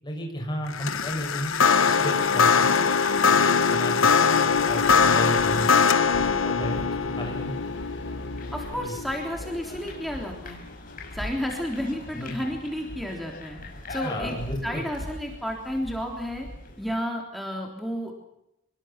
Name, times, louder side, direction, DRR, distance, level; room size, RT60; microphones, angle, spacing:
voice 1, 0.0-1.5 1.8-2.7 3.2-4.2 4.6-5.7 6.2-7.5 8.7-9.0 12.1-12.3 14.0-14.8, equal, 20° left, 1 dB, 6.7 m, -33 dB
sound 1, 0.7-10.0, left 5 dB, 85° left, 1.2 m, -22 dB
sound 2, 4.5-17.0, left 1 dB, 40° left, 6.3 m, -41 dB
sound 3, 6.6-9.6, left 1 dB, 65° left, 6.9 m, -42 dB
voice 2, 8.5-10.6 11.1-13.6 13.9-14.4 14.6-16.5 16.8-18.1, equal, ahead, 0 dB, 3.5 m, -31 dB
26.5 x 22.0 x 5.9 m, 0.81 s
head